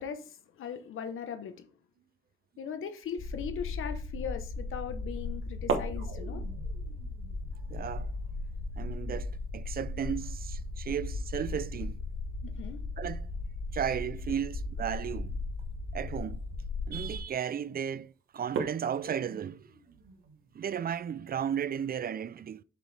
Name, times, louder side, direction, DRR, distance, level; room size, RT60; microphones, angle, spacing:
voice 1, 0.0-1.6 2.6-6.4 12.4-12.8, left 7 dB, 80° left, 1.0 m, -39 dB
sound 1, 3.2-17.2, left 3 dB, 55° left, 1.7 m, -37 dB
sound 2, 4.0-4.3 5.5-12.0 12.2-12.3 12.7-13.1 14.1-14.3 14.9-15.0 15.5-15.6 16.0-16.3 16.9-17.3 17.7-17.8 18.4-20.7, right 5 dB, 75° right, 1.2 m, -40 dB
voice 2, 7.7-8.1 8.8-12.0 13.0-13.3 13.7-15.4 15.9-16.4 16.9-19.6 20.5-22.6, right 8 dB, 45° right, 0.4 m, -34 dB
7.6 x 5.2 x 3.3 m
cardioid pair, 60°, 21 cm